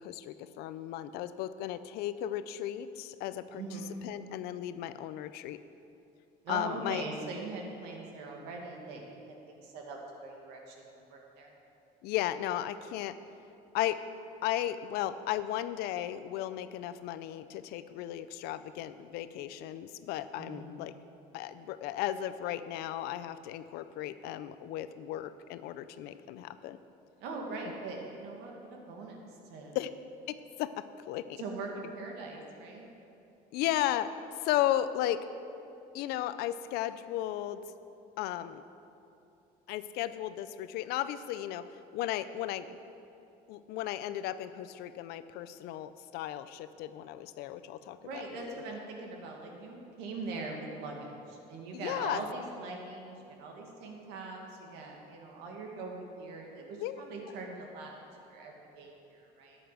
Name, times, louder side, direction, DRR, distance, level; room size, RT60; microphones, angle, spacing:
voice 1, 0.0-3.6 4.0-5.6 6.5-7.0 12.0-13.2 13.7-14.0 14.4-20.9 21.3-26.8 29.7-29.9 30.3-31.4 33.5-34.1 34.4-35.2 35.9-37.6 38.2-38.6 39.7-41.6 41.9-42.8 43.5-48.5 51.7-52.2 56.8-57.0, left 12 dB, 75° left, 13 dB, 0.5 m, -35 dB
voice 2, 3.5-3.9 6.4-11.5 20.3-20.7 27.2-29.2 29.5-29.8 31.4-32.9 48.0-58.0 58.3-59.6, right 3 dB, 85° right, 0 dB, 2.2 m, -42 dB
12.5 x 10.0 x 5.0 m, 2.7 s
cardioid pair, 165°, 17 cm